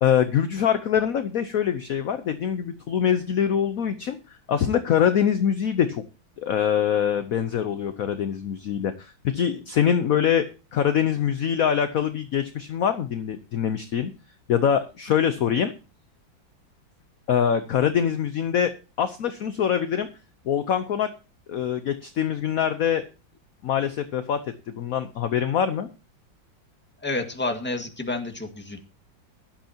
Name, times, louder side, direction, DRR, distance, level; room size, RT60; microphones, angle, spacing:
voice 1, 0.0-4.2 4.5-6.0 6.4-10.5 10.7-14.1 14.5-15.7 17.3-18.7 19.0-20.1 20.4-21.1 21.5-23.0 23.6-24.4 24.7-25.9, left 8 dB, 60° left, 10 dB, 1.0 m, -24 dB
voice 2, 27.0-28.8, left 2 dB, 5° left, 4 dB, 1.5 m, -29 dB
16.0 x 11.5 x 2.8 m, 0.32 s
omnidirectional pair, 2.1 m